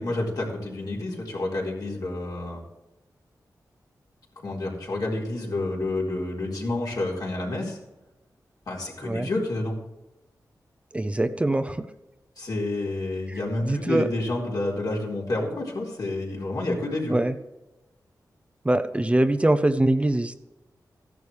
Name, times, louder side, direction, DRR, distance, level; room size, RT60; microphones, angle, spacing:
voice 1, 0.0-2.6 4.4-7.8 8.7-9.8 12.4-17.2, left 2 dB, 65° left, -3 dB, 4.0 m, -29 dB
voice 2, 10.9-11.9 13.3-14.1 17.1-17.3 18.6-20.3, right 1 dB, 15° right, 9 dB, 0.6 m, -23 dB
14.5 x 11.0 x 3.4 m, 0.97 s
wide cardioid pair, 95°, 7 cm